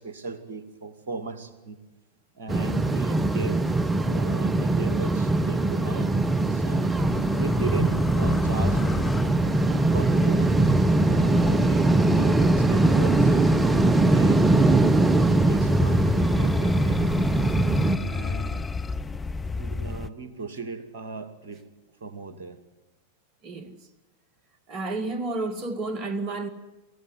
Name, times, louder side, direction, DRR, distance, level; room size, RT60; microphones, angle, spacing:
voice 1, 0.0-1.8 2.3-3.7 4.0-6.1 6.5-6.9 7.3-9.3 9.9-10.5 11.0-14.9 15.5-17.0 18.0-18.6 19.5-21.7 22.0-22.6, right 4 dB, 60° right, 2.4 m, -37 dB
sound 1, 2.5-18.0, right 2 dB, 15° right, 1.1 m, -21 dB
sound 2, 7.0-20.1, left 4 dB, 15° left, 0.7 m, -31 dB
voice 2, 23.4-23.8 24.7-26.5, right 2 dB, 35° right, 2.1 m, -31 dB
23.5 x 16.0 x 9.7 m
figure-of-eight pair, 90°, 0 cm